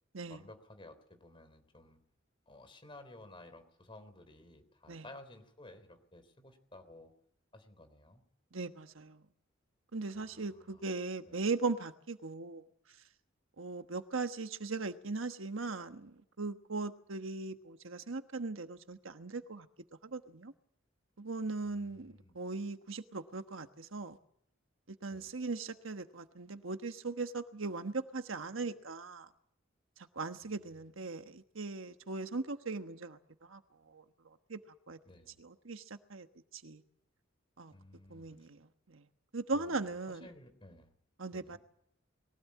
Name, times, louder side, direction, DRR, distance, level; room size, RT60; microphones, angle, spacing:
voice 1, 0.3-2.0 2.5-7.1 7.5-8.2 10.1-10.8 11.3-11.4 21.6-22.4 25.1-25.3 30.7-30.8 35.1-35.4 37.7-38.5 39.5-40.9 41.3-41.6, left 1 dB, 25° left, 3.4 m, -55 dB
voice 2, 8.5-9.2 9.9-12.6 13.6-19.7 20.0-20.5 21.2-24.2 25.0-29.3 30.1-33.2 33.5-33.6 33.9-34.0 34.5-34.6 34.9-35.0 35.4-36.3 36.5-36.8 37.6-37.7 38.1-39.0 39.3-40.3 41.2-41.6, right 3 dB, 75° right, 1.3 m, -39 dB
22.0 x 17.0 x 8.5 m
head